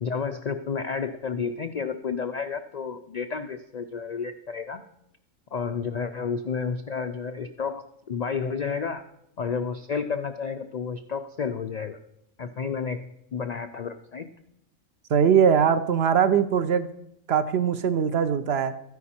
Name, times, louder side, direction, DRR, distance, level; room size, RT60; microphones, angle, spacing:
voice 1, 0.0-4.8 5.5-9.0 9.4-12.0 12.4-14.3, left 5 dB, 75° left, 8 dB, 0.3 m, -31 dB
voice 2, 15.1-16.9 17.3-18.8, right 7 dB, 60° right, 11 dB, 0.7 m, -21 dB
13.0 x 9.6 x 4.3 m, 0.79 s
omnidirectional pair, 1.3 m